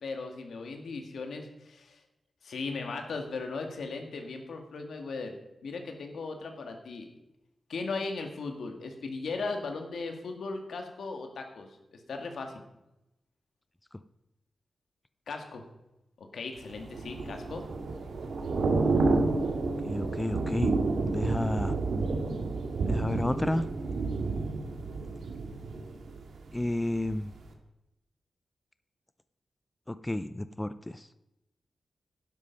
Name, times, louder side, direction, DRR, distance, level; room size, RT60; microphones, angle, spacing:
voice 1, 0.0-2.0 2.4-5.4 5.6-7.1 7.7-11.7 12.1-12.5 15.3-15.7 16.2-17.6, left 3 dB, 80° left, 4 dB, 1.9 m, -37 dB
Thunder / Rain, 16.7-26.7 27.0-27.3, right 3 dB, 80° right, 1.7 m, -30 dB
voice 2, 19.8-20.7 21.1-21.8 22.9-23.6 26.5-27.3 29.9-31.1, left 1 dB, 10° left, 13 dB, 0.4 m, -31 dB
11.5 x 10.5 x 5.3 m, 0.91 s
wide cardioid pair, 170°, 0 cm